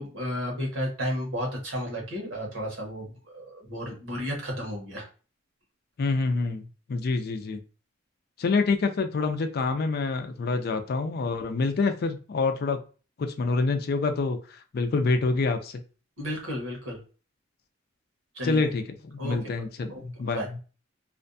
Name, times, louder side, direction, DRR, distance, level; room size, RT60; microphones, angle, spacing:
voice 1, 0.0-5.1 16.2-17.0 18.3-18.6 19.2-19.5 19.9-20.5, equal, 75° right, 0 dB, 1.0 m, -33 dB
voice 2, 6.0-7.6 8.4-12.8 13.2-15.8 18.4-20.4, left 3 dB, 50° left, 8 dB, 0.4 m, -27 dB
2.5 x 2.2 x 2.5 m, 0.36 s
head